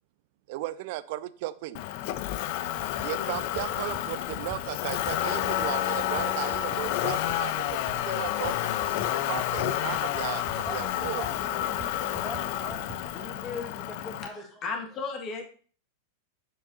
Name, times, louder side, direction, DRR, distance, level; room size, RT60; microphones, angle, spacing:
voice 1, 0.5-1.8 3.0-11.2, right 16 dB, 50° right, 17 dB, 0.4 m, -36 dB
Motor vehicle (road), 1.7-14.3, left 13 dB, 45° left, 0.4 m, -30 dB
sound 1, 2.7-13.2, right 2 dB, 25° right, 1.1 m, -46 dB
voice 2, 10.6-14.6, left 2 dB, 5° left, -1 dB, 1.8 m, -42 dB
voice 3, 14.6-15.4, left 4 dB, 30° left, 1 dB, 1.7 m, -33 dB
7.5 x 6.8 x 2.7 m, 0.43 s
figure-of-eight pair, 90°, 0 cm